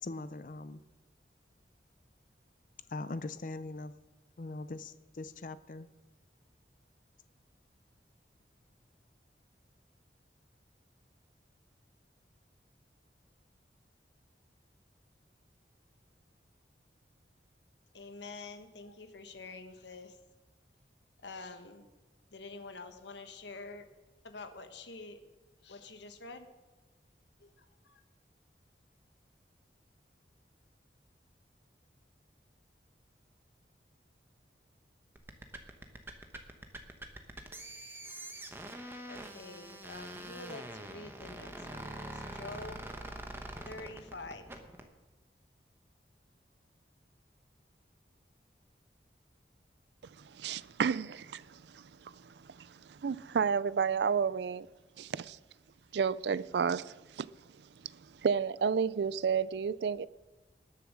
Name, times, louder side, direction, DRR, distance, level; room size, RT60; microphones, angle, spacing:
voice 1, 0.0-0.8 2.9-3.9 4.4-5.9, left 2 dB, 45° left, 0.5 m, -41 dB
voice 2, 17.9-20.2 21.2-21.9 22.3-23.9 24.2-25.2 25.6-26.5 27.4-28.0 39.1-43.2 43.6-44.5, left 3 dB, 90° left, 1.4 m, -47 dB
sound 1, 35.2-44.9, right 1 dB, 15° right, 1.0 m, -44 dB
voice 3, 50.0-54.7 55.0-55.4 55.9-57.3 57.8-60.1, right 6 dB, 80° right, 0.4 m, -32 dB
19.5 x 7.0 x 6.3 m
head